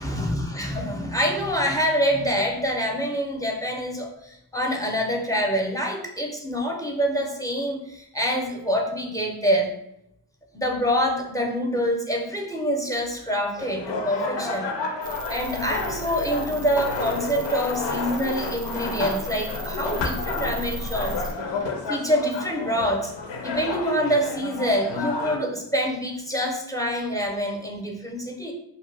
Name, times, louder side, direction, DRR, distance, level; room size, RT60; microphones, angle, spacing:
voice 1, 0.0-9.7 10.5-14.7 15.3-21.2 21.9-23.1 23.4-28.5, equal, 10° left, 2 dB, 0.5 m, -26 dB
sound 1, 13.6-25.4, left 3 dB, 85° left, 0.6 m, -31 dB
sound 2, 15.0-21.3, right 1 dB, 75° right, 0.5 m, -36 dB
2.6 x 2.2 x 3.2 m, 0.80 s
cardioid pair, 50°, 41 cm